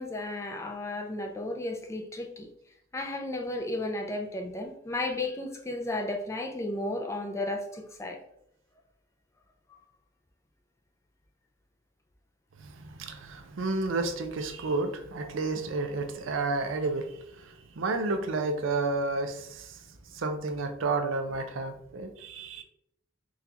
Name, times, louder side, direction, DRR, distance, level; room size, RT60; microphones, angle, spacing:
voice 1, 0.0-2.5 2.9-8.2, left 2 dB, 15° left, 3 dB, 0.3 m, -34 dB
voice 2, 12.6-22.6, right 3 dB, 80° right, 5 dB, 0.5 m, -31 dB
3.8 x 2.4 x 2.8 m, 0.73 s
head